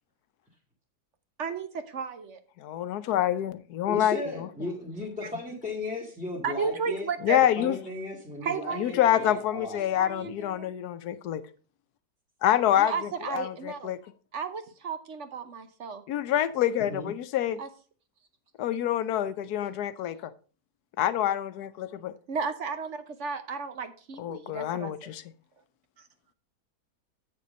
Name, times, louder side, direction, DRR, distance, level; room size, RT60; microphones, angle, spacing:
voice 1, 1.4-2.4 6.4-7.4 8.4-9.3 9.8-10.7 12.8-13.9 14.3-16.0 17.6-17.7 22.3-24.9 26.0-26.1, right 5 dB, 55° right, 9 dB, 1.1 m, -34 dB
voice 2, 2.6-4.5 7.2-7.8 8.8-11.4 12.4-12.9 13.3-14.0 16.1-17.6 18.6-20.3 21.0-22.1 24.2-25.2, left 11 dB, 75° left, 13 dB, 1.2 m, -27 dB
voice 3, 3.9-7.1 7.6-10.3 16.8-17.1, left 2 dB, 5° right, -2 dB, 1.6 m, -36 dB
8.4 x 6.8 x 5.2 m, 0.39 s
omnidirectional pair, 1.7 m